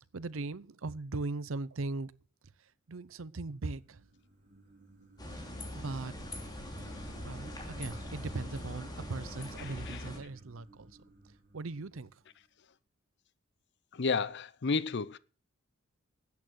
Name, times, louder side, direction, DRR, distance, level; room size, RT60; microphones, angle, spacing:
voice 1, 0.1-2.1 2.9-4.0 5.3-6.1 7.2-11.0 11.5-12.2, right 3 dB, 75° right, 0.7 m, -39 dB
sound 1, 3.3-12.4, right 1 dB, 45° right, 3.7 m, -56 dB
sound 2, 5.2-10.2, left 1 dB, 20° left, 3.1 m, -42 dB
voice 2, 9.6-10.0 13.9-15.2, left 4 dB, 60° left, 0.6 m, -32 dB
12.5 x 8.7 x 6.3 m
head